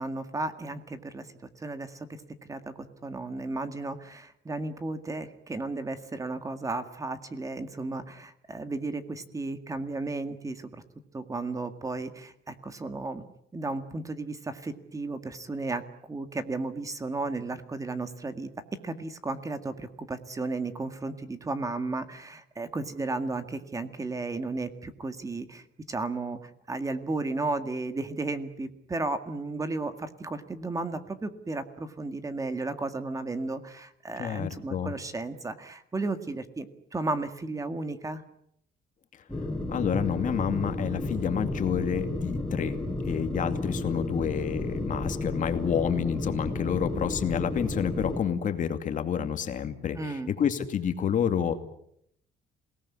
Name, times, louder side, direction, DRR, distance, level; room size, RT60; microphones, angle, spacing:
voice 1, 0.0-2.2 2.5-10.8 11.1-13.2 13.5-15.8 16.1-36.7 36.9-38.2 50.0-50.3, right 3 dB, 15° right, 9 dB, 1.9 m, -34 dB
voice 2, 34.2-34.9 39.1-39.2 39.7-51.6, left 8 dB, 45° left, 7 dB, 2.4 m, -29 dB
sound 1, 39.3-48.2, left 2 dB, 5° left, 6.2 m, -32 dB
27.5 x 19.0 x 9.8 m, 0.74 s
cardioid pair, 150°, 19 cm